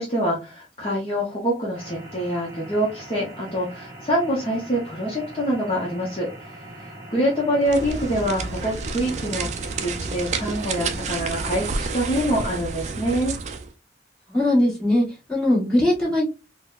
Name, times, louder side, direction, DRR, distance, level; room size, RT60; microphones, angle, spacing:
voice 1, 0.0-9.5 9.8-13.3, equal, 30° left, -4 dB, 0.8 m, -25 dB
sound 1, 1.7-11.7, right 1 dB, 25° right, 1.2 m, -42 dB
sound 2, 7.6-13.7, right 4 dB, 40° right, 0.4 m, -30 dB
voice 2, 14.3-16.2, left 1 dB, 5° left, -7 dB, 1.4 m, -20 dB
3.9 x 2.1 x 2.3 m, 0.28 s
head